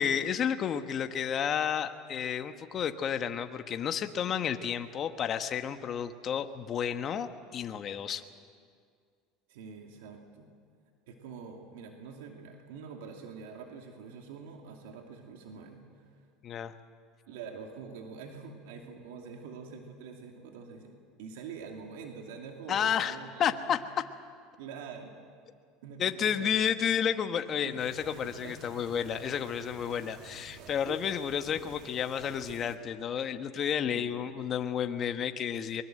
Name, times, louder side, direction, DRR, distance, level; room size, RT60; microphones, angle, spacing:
voice 1, 0.0-8.2 16.4-16.7 22.7-23.8 26.0-35.8, left 8 dB, 40° left, 8 dB, 1.3 m, -31 dB
voice 2, 9.5-10.5 11.1-16.2 17.3-23.7 24.6-25.1 25.8-26.5 27.6-28.6 33.8-34.2, right 5 dB, 85° right, 2 dB, 2.5 m, -46 dB
sound 1, 27.8-32.8, right 7 dB, 60° right, 2.0 m, -50 dB
23.0 x 22.0 x 7.8 m, 2.1 s
supercardioid pair, 110°, 0 cm